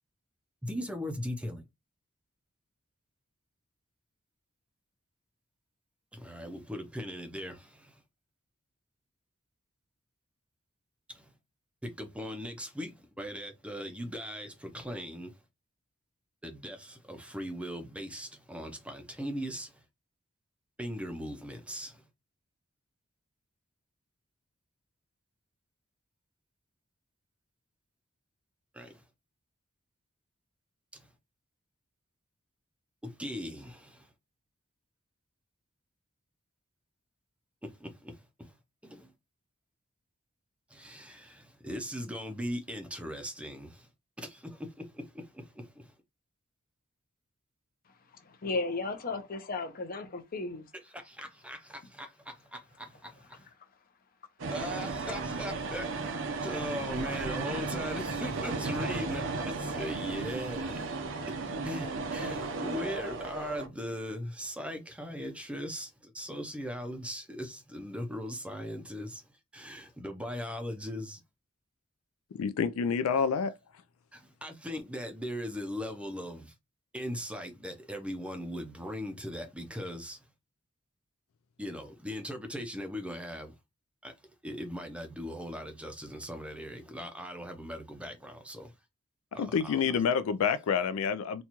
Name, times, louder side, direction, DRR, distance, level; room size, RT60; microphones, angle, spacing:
voice 1, 0.6-1.6 6.1-8.0 11.1-11.3 11.8-15.3 16.4-19.8 20.8-22.0 28.7-29.0 30.9-31.1 33.0-34.1 37.6-38.6 38.8-39.1 40.7-43.9 44.2-45.9 50.9-53.5 54.5-56.1 56.4-61.0 61.3-69.2 69.5-71.2 74.1-76.5 76.9-80.2 81.6-83.5 84.0-84.1 84.4-88.7 89.3-90.0, equal, 5° right, 0.5 m, -39 dB
voice 2, 48.3-50.7, left 3 dB, 45° left, 0.7 m, -34 dB
sound 1, 54.4-63.7, right 3 dB, 60° right, 0.6 m, -35 dB
voice 3, 72.3-73.5 89.4-91.4, left 6 dB, 80° left, 0.4 m, -28 dB
4.1 x 2.3 x 2.9 m
head